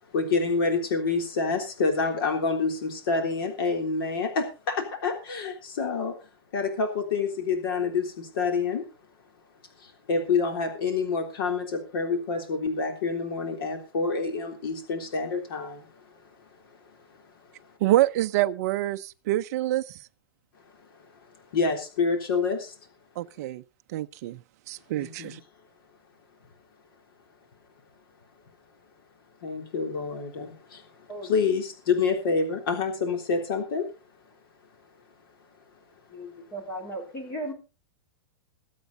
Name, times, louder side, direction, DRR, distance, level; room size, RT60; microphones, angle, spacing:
voice 1, 0.1-6.2 6.5-8.8 9.8-15.9 21.5-22.7 25.0-25.4 29.4-30.9 31.2-33.9, left 4 dB, 60° left, 3.5 m, -27 dB
voice 2, 17.8-20.0 23.2-23.6 23.9-24.4 24.7-25.4, right 15 dB, 40° right, 0.6 m, -26 dB
voice 3, 31.1-31.5 36.1-37.5, right 1 dB, 20° left, 3.3 m, -36 dB
22.5 x 8.2 x 4.0 m
supercardioid pair, 175°, 14 cm